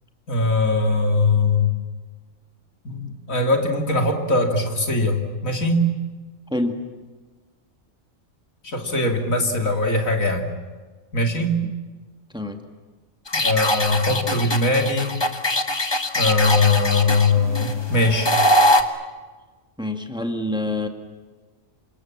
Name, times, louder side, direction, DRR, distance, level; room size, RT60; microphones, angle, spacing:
voice 1, 0.3-1.7 2.8-5.9 8.6-10.5 11.1-11.6 13.3-15.2 16.1-18.4, left 2 dB, 80° left, 3 dB, 3.3 m, -21 dB
voice 2, 6.5-6.8 11.6-11.7 12.3-12.6 19.8-20.9, left 1 dB, 5° right, 5 dB, 2.0 m, -26 dB
sound 1, 13.3-18.8, left 1 dB, 20° left, 1.3 m, -22 dB
28.5 x 26.0 x 7.5 m, 1.4 s
omnidirectional pair, 1.4 m